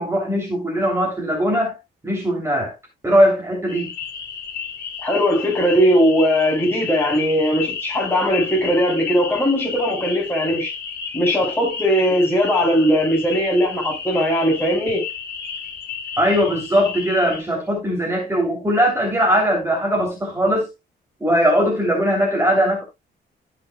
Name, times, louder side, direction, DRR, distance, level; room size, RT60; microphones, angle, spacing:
voice 1, 0.0-1.8 2.0-2.7 3.0-3.9 16.2-20.7 21.2-22.8, equal, 15° right, 3.1 m, -20 dB
sound 1, 3.7-17.4, left 6 dB, 55° left, 3.2 m, -32 dB
voice 2, 5.0-10.7 11.1-15.1, equal, 10° left, 5.1 m, -19 dB
16.0 x 5.9 x 2.3 m
cardioid pair, 125°, 19 cm